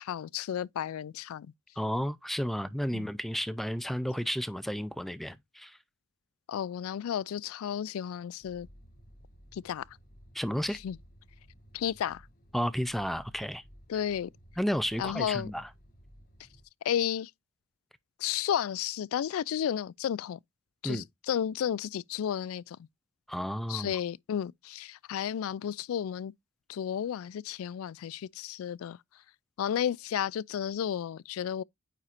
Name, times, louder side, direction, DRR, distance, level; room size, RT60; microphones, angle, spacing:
voice 1, 0.0-1.5 2.9-3.1 6.5-8.7 9.5-9.8 10.8-11.0 11.7-12.2 13.9-14.3 15.0-15.5 16.8-17.3 18.2-20.4 20.8-22.8 23.7-26.3 26.7-29.0 29.6-31.6, left 9 dB, 80° left, 0.3 m, -32 dB
voice 2, 1.8-5.8 10.3-10.8 12.5-13.6 14.6-15.7 20.8-21.0 23.3-24.0, equal, ahead, 0.3 m, -32 dB
sound 1, 8.4-16.6, equal, 45° left, 1.5 m, -56 dB
9.1 x 4.2 x 2.5 m
head